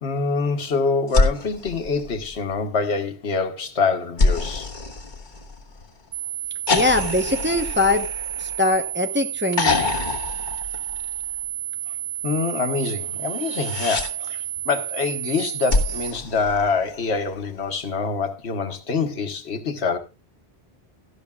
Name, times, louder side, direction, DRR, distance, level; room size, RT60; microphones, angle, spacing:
voice 1, 0.0-4.7 12.2-20.0, left 4 dB, 80° left, 1.5 m, -25 dB
sound 1, 1.1-2.7 4.2-5.9 6.7-8.9 9.5-11.4 13.3-14.1 15.7-17.2 18.7-18.8, left 3 dB, 50° left, 1.5 m, -26 dB
sound 2, 6.1-16.1, right 11 dB, 65° right, 1.0 m, -31 dB
voice 2, 6.7-8.1 8.4-9.8, left 2 dB, 10° right, 0.7 m, -22 dB
16.5 x 12.0 x 2.3 m
omnidirectional pair, 1.1 m